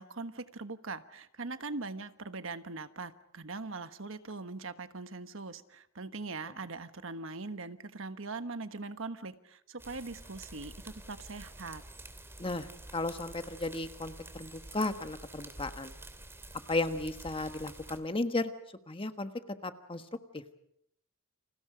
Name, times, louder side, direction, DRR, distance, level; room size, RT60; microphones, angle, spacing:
voice 1, 0.0-11.8, right 3 dB, 65° right, 10 dB, 1.3 m, -41 dB
sound 1, 9.8-18.0, right 1 dB, 10° right, 2.6 m, -49 dB
voice 2, 12.9-15.9 16.7-18.5 18.9-19.3 19.6-20.0 20.3-20.4, left 2 dB, 25° left, 8 dB, 1.5 m, -34 dB
30.0 x 28.0 x 5.1 m, 0.72 s
head